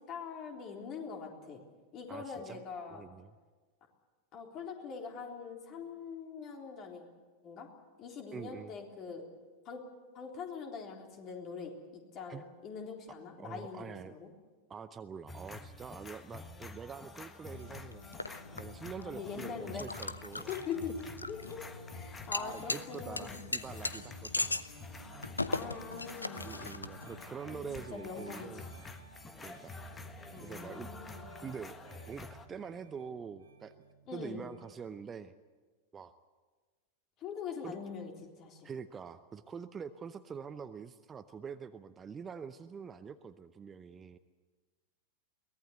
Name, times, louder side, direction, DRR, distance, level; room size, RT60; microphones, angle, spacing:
voice 1, 0.0-1.6 1.9-3.0 4.3-7.0 7.4-7.7 8.0-9.3 9.7-9.8 10.1-14.3 19.0-19.9 20.5-20.9 21.3-21.4 21.9-23.4 25.5-26.4 27.5-27.7 27.9-28.5 30.3-31.3 34.1-34.5 37.2-38.7, left 6 dB, 35° left, 2 dB, 3.7 m, -43 dB
voice 2, 2.1-2.6 2.9-3.4 8.3-8.8 12.3-12.4 13.4-14.2 14.7-18.0 18.5-20.5 22.4-24.6 26.4-28.6 29.4-29.7 30.4-30.9 31.4-31.8 32.1-33.7 34.1-35.3 35.9-36.1 37.6-37.8 38.6-44.2, right 6 dB, 20° right, 11 dB, 0.7 m, -45 dB
sound 1, 15.3-32.5, left 3 dB, 15° left, 1.5 m, -49 dB
sound 2, 17.5-27.2, left 2 dB, 80° left, 0.8 m, -40 dB
Piano, 25.0-34.7, right 3 dB, 75° right, 2.3 m, -56 dB
23.0 x 18.5 x 8.1 m, 1.4 s
figure-of-eight pair, 90°, 0 cm